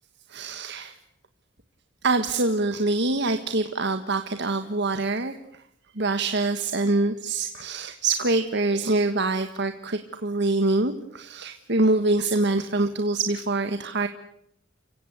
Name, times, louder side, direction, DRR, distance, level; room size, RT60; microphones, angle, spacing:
voice 1, 0.3-1.0 2.0-5.3 5.9-14.1, right 2 dB, 60° right, 8 dB, 1.5 m, -25 dB
30.0 x 17.0 x 9.4 m, 0.76 s
head